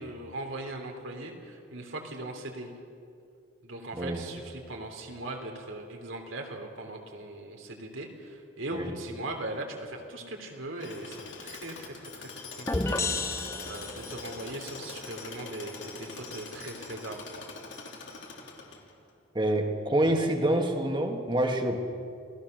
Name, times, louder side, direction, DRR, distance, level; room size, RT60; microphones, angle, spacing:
voice 1, 0.0-2.7 3.6-17.4, right 2 dB, 75° right, 2 dB, 3.1 m, -39 dB
voice 2, 3.9-4.3 8.7-8.9 19.3-21.8, right 1 dB, 25° right, 4 dB, 1.9 m, -27 dB
Tools, 10.8-19.1, left 4 dB, 65° left, 2.9 m, -43 dB
sound 1, 12.7-14.4, left 2 dB, 15° left, 0.7 m, -31 dB
28.0 x 18.0 x 6.6 m, 2.5 s
head